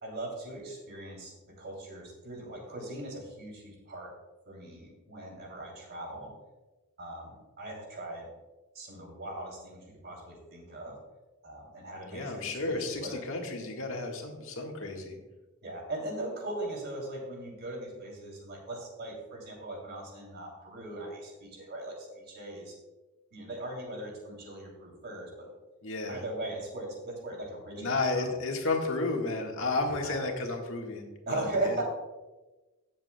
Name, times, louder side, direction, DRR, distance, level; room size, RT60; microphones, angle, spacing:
voice 1, 0.0-4.1 4.5-6.3 7.0-8.3 8.7-10.9 11.4-13.2 15.6-22.7 23.3-25.5 26.1-28.3 30.0-30.2 31.3-31.8, right 1 dB, 50° right, 0 dB, 2.9 m, -39 dB
voice 2, 12.1-15.2 25.8-26.2 27.7-31.7, left 3 dB, 65° left, 1 dB, 1.6 m, -32 dB
17.0 x 7.5 x 2.3 m, 1.2 s
head